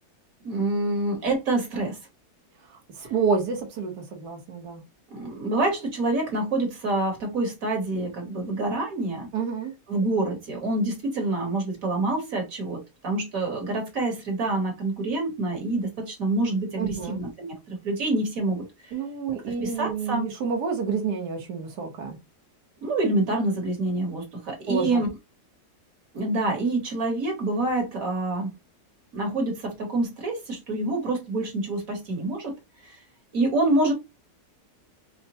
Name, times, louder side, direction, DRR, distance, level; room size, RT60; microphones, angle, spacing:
voice 1, 0.4-2.0 5.1-9.3 9.9-18.9 19.6-20.3 22.8-25.1 26.1-28.5 29.1-32.5 32.8-33.0 33.3-33.9, right 2 dB, 60° right, 1.6 m, -27 dB
voice 2, 3.0-4.8 9.3-9.7 16.8-17.2 18.9-22.2 24.7-25.0, right 5 dB, 80° right, 1.5 m, -28 dB
4.9 x 2.2 x 2.8 m
omnidirectional pair, 1.7 m